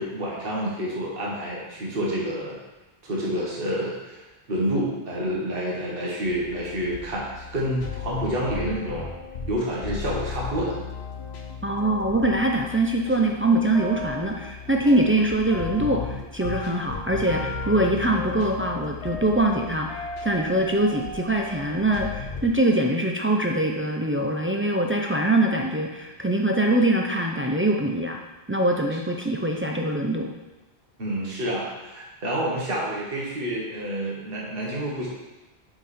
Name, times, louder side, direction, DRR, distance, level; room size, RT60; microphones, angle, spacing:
voice 1, 0.0-2.6 3.0-4.2 4.5-9.1 9.5-10.7 31.0-35.1, equal, 60° right, -4 dB, 1.6 m, -28 dB
sound 1, 6.2-22.5, left 4 dB, 85° left, 1.1 m, -35 dB
voice 2, 11.6-28.2 28.5-30.3, right 1 dB, 20° right, 1 dB, 0.3 m, -23 dB
5.9 x 5.1 x 4.3 m, 1.1 s
omnidirectional pair, 1.1 m